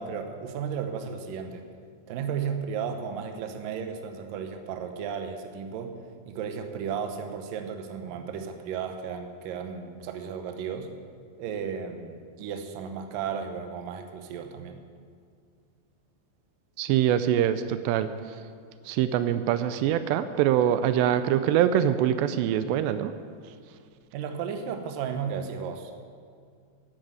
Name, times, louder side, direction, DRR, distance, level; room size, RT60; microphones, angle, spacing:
voice 1, 0.0-1.7 2.1-6.0 6.3-10.9 11.4-14.8 24.1-26.0, right 7 dB, 70° right, 6 dB, 2.3 m, -34 dB
voice 2, 16.8-18.1 18.9-23.1, right 10 dB, 85° right, 11 dB, 2.7 m, -24 dB
11.5 x 10.5 x 7.9 m, 2.1 s
omnidirectional pair, 4.9 m